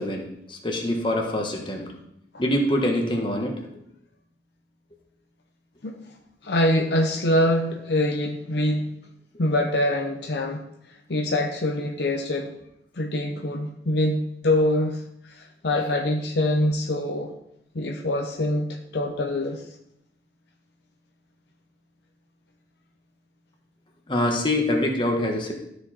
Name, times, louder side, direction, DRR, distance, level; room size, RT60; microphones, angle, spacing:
voice 1, 0.0-1.9 2.4-3.5 24.1-25.5, left 1 dB, 25° left, 1 dB, 1.4 m, -25 dB
voice 2, 6.4-8.9 9.4-10.6 11.1-12.5 13.0-15.0 15.3-17.3 17.7-19.6, left 1 dB, 65° left, 3 dB, 0.7 m, -24 dB
13.0 x 5.0 x 4.3 m, 0.79 s
head